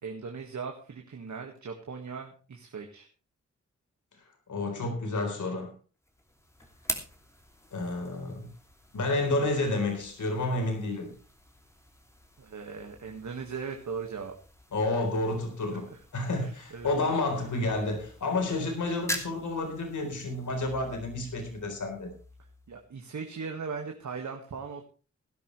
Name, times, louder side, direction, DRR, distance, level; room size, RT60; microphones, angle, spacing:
voice 1, 0.0-3.1 12.4-14.3 15.7-16.0 16.4-16.9 17.4-17.5 22.7-24.8, right 5 dB, 75° right, 3 dB, 1.9 m, -39 dB
voice 2, 4.5-5.7 7.7-8.5 8.9-11.1 14.7-22.1, left 2 dB, 85° left, 4 dB, 4.1 m, -30 dB
sound 1, 6.0-23.0, left 1 dB, 10° left, 2.8 m, -44 dB
17.5 x 12.0 x 3.3 m, 0.35 s
wide cardioid pair, 75°, 29 cm